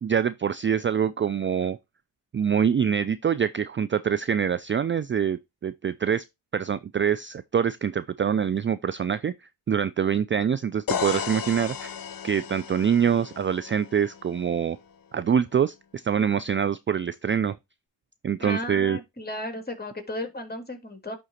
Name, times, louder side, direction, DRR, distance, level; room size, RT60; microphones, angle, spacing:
voice 1, 0.0-1.8 2.3-6.2 6.5-11.9 12.2-14.8 15.1-17.6 18.2-19.0, right 8 dB, 30° right, 0.4 m, -25 dB
sound 1, 10.9-14.7, left 7 dB, 50° left, 0.9 m, -34 dB
voice 2, 18.4-21.2, left 1 dB, 20° left, 2.5 m, -34 dB
11.0 x 3.7 x 2.8 m
supercardioid pair, 45°, 43 cm